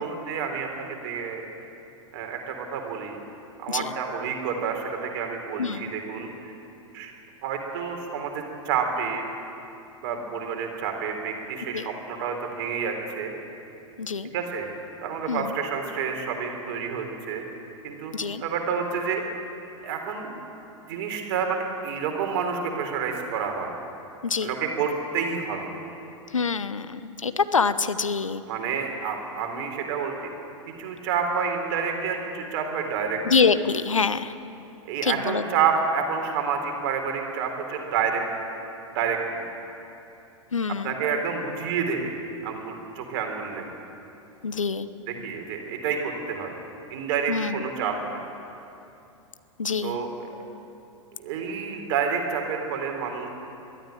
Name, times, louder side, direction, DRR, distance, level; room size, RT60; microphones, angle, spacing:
voice 1, 0.0-1.5 2.1-3.2 3.6-6.5 6.9-7.1 7.4-9.3 10.0-13.3 14.3-14.7 15.0-17.4 17.8-18.1 18.4-19.2 19.8-20.3 20.9-23.7 24.4-25.7 28.5-30.3 30.8-33.2 34.9-38.2 38.9-39.5 40.8-42.2 42.4-43.6 45.1-46.5 46.9-48.2 49.8-50.3 51.2-53.3, right 6 dB, 45° right, 3 dB, 3.7 m, -29 dB
voice 2, 5.6-5.9 11.7-11.9 14.0-14.3 15.3-15.6 18.1-18.4 24.2-24.5 26.3-28.4 33.2-34.3 35.0-35.4 40.5-40.9 44.4-44.9 47.3-47.7 49.6-50.0, left 5 dB, 75° left, 13 dB, 1.0 m, -25 dB
22.0 x 14.0 x 9.1 m, 2.8 s
figure-of-eight pair, 95°, 17 cm